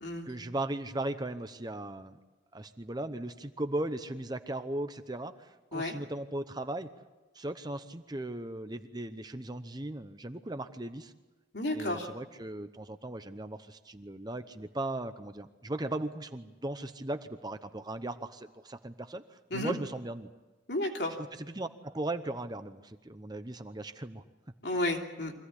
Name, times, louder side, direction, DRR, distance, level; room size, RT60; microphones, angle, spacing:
voice 1, 0.2-2.2 2.5-6.9 7.3-11.1 11.7-20.3 21.2-24.2, right 1 dB, 20° right, 9 dB, 0.9 m, -37 dB
voice 2, 11.5-12.1 19.5-19.7 20.7-21.2 24.6-25.3, left 1 dB, 60° left, 2 dB, 3.2 m, -32 dB
25.0 x 16.5 x 10.0 m, 1.2 s
head